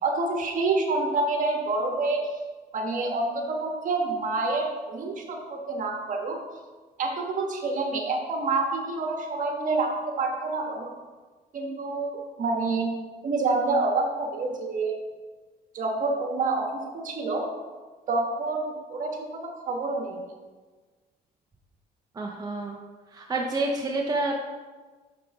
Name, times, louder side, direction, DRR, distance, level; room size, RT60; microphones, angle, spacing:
voice 1, 0.0-2.2 2.7-6.4 7.0-10.9 11.5-12.9 13.2-14.9 15.7-17.4 18.1-20.2, right 3 dB, 50° right, 2 dB, 1.5 m, -27 dB
voice 2, 22.1-22.8 23.1-24.3, right 2 dB, 20° right, 0 dB, 0.8 m, -28 dB
6.1 x 6.0 x 4.8 m, 1.4 s
cardioid pair, 110°, 17 cm